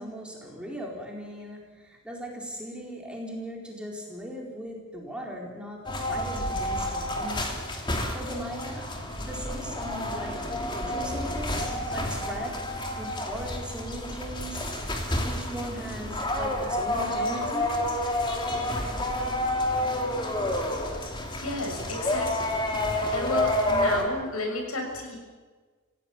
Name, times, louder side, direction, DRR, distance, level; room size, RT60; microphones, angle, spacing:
voice 1, 0.0-7.5 7.7-8.9 9.2-10.4 10.6-17.8, equal, 5° right, -2 dB, 4.3 m, -38 dB
sound 1, 5.8-24.0, left 1 dB, 20° left, 2.9 m, -29 dB
voice 2, 21.4-22.6 23.1-25.1, left 2 dB, 80° left, 2 dB, 6.7 m, -32 dB
28.0 x 16.5 x 7.2 m, 1.4 s
head